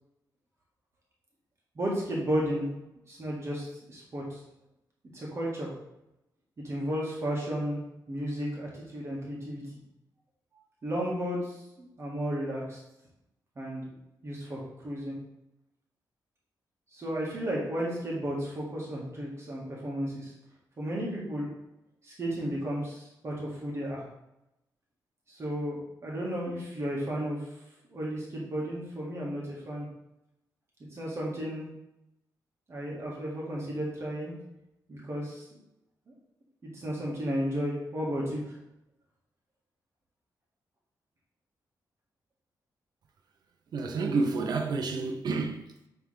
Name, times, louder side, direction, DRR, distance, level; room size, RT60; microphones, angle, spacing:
voice 1, 1.7-2.7 3.1-4.4 5.1-5.7 6.6-7.8 8.1-9.6 10.8-12.8 13.5-13.9 14.2-15.1 16.9-20.3 20.8-21.5 22.0-24.0 25.3-25.8 26.0-27.5 27.9-29.9 30.9-31.7 32.7-34.3 34.9-35.5 36.6-38.6, equal, 40° right, 1.7 m, -33 dB
voice 2, 43.7-45.9, right 4 dB, 70° right, 0.7 m, -30 dB
9.2 x 3.5 x 3.4 m
wide cardioid pair, 125°, 7 cm